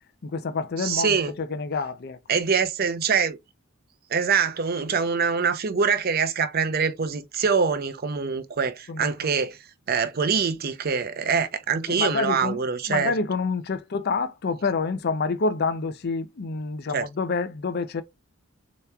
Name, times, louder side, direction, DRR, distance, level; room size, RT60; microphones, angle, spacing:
voice 1, 0.2-2.2 8.9-9.3 11.9-12.6 12.9-18.0, left 4 dB, 50° left, 0.5 m, -28 dB
voice 2, 0.8-1.3 2.3-3.4 4.1-9.6 9.9-13.1 16.9-17.0, right 5 dB, 45° right, 0.6 m, -24 dB
6.7 x 3.0 x 2.3 m
head